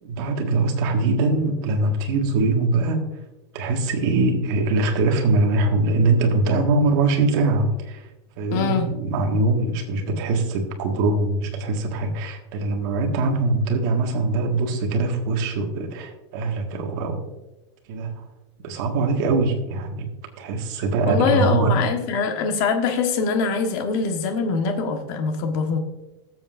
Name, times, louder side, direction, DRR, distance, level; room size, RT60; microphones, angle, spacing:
voice 1, 0.0-3.1 3.5-8.1 8.4-17.2 17.9-18.2 18.6-20.1 20.4-21.8, right 3 dB, 45° right, 2 dB, 1.7 m, -22 dB
voice 2, 8.5-8.9 21.0-25.8, left 5 dB, 40° left, 4 dB, 1.4 m, -23 dB
20.0 x 7.6 x 2.6 m, 1.0 s
supercardioid pair, 170°, 15 cm